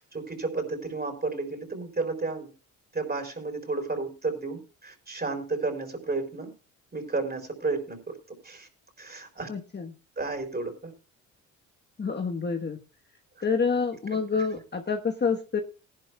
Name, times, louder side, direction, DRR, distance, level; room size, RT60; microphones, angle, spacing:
voice 1, 0.0-2.5 2.9-6.5 6.9-8.2 8.4-8.7 9.0-9.5 10.2-10.9, right 3 dB, 25° right, 5 dB, 4.6 m, -32 dB
voice 2, 9.5-9.9 12.0-12.8 13.4-15.6, left 5 dB, 25° left, 4 dB, 1.3 m, -28 dB
19.0 x 11.5 x 2.3 m, 0.35 s
hypercardioid pair, 55°, 38 cm